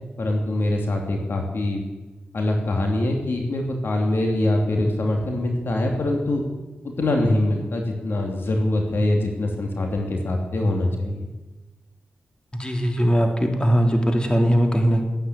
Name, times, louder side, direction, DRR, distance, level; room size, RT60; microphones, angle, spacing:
voice 1, 0.2-1.8 2.3-6.4 6.8-11.3, left 1 dB, 70° left, 1 dB, 3.0 m, -23 dB
voice 2, 12.6-15.0, equal, 25° left, 3 dB, 3.3 m, -20 dB
14.5 x 9.8 x 8.8 m, 1.2 s
cardioid pair, 45°, 4 cm